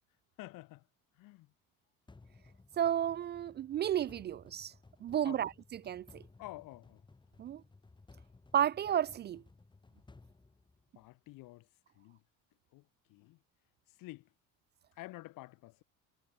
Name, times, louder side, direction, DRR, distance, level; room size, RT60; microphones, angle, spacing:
voice 1, 0.4-0.9 1.1-1.5 5.2-5.5 6.4-7.0 10.9-11.7 11.9-12.2 12.7-13.4 13.9-14.3 14.9-15.8, left 19 dB, 75° left, 5.0 m, -50 dB
sound 1, 2.1-11.3, left 3 dB, 15° left, 5.3 m, -60 dB
voice 2, 2.8-4.7 5.0-5.5 5.9-6.2 7.4-7.6 8.5-9.4, right 10 dB, 35° right, 0.4 m, -32 dB
cardioid pair, 140°, 33 cm